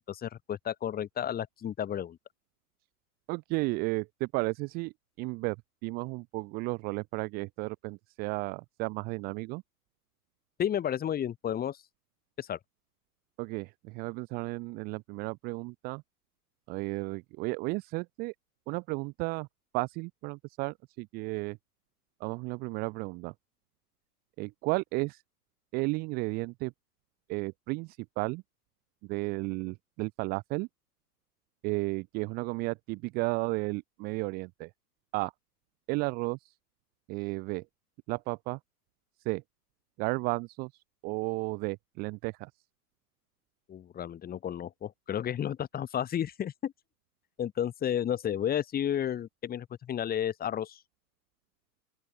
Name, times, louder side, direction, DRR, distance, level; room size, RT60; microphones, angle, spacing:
voice 1, 0.1-2.2 10.6-11.8 12.4-12.6 43.7-46.7 47.4-50.8, left 10 dB, 20° left, 3.4 m, -32 dB
voice 2, 3.3-4.9 5.2-5.6 5.8-9.6 13.4-16.0 16.7-18.3 18.7-19.5 19.7-21.6 22.2-23.3 24.4-25.2 25.7-26.7 27.3-28.4 29.1-30.7 31.6-34.7 35.1-35.3 35.9-36.5 37.1-37.6 38.1-38.6 39.2-39.4 40.0-40.7 41.0-42.5, right 26 dB, 20° right, 0.7 m, -33 dB
open air
figure-of-eight pair, 115°, 47 cm